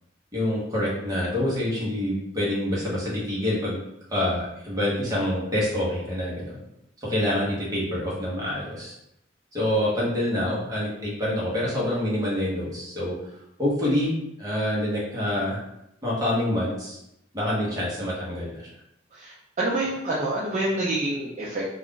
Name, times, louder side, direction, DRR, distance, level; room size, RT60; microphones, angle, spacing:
voice 1, 0.3-3.8 4.1-6.6 7.0-8.9 9.5-13.1 13.6-14.1 14.4-15.6 16.0-17.0 17.3-18.7, left 1 dB, 20° right, -7 dB, 0.9 m, -26 dB
voice 2, 19.1-21.7, right 2 dB, 35° right, -7 dB, 0.4 m, -27 dB
2.4 x 2.4 x 3.6 m, 0.82 s
head